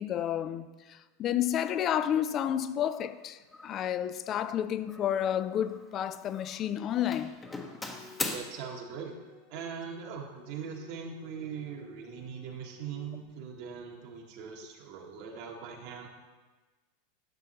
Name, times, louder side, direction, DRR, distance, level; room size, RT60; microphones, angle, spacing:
voice 1, 0.0-7.4, left 10 dB, 40° left, 0.4 m, -31 dB
Doorbell, 2.1-2.3 2.9-3.2 3.5-3.9 4.9-5.9 6.2-6.7 7.1-8.4, left 3 dB, 15° left, 0.9 m, -40 dB
sound 1, 7.5-13.3, left 4 dB, 80° left, 1.6 m, -55 dB
voice 2, 8.3-9.1 9.5-16.1, right 6 dB, 60° right, 1.3 m, -41 dB
10.5 x 5.7 x 3.0 m
hypercardioid pair, 95°, 0 cm